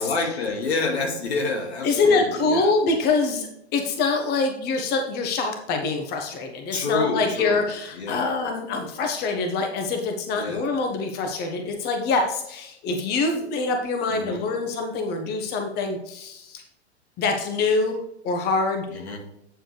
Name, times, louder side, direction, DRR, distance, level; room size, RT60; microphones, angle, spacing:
voice 1, 0.0-2.7 6.7-7.6 7.9-8.3 10.3-10.7 14.1-14.4 18.9-19.2, left 3 dB, 70° left, 2 dB, 2.3 m, -28 dB
voice 2, 1.8-16.6 17.2-18.0 18.2-18.9, left 3 dB, 30° left, 4 dB, 1.3 m, -25 dB
8.9 x 7.5 x 3.3 m, 0.80 s
hypercardioid pair, 110°, 34 cm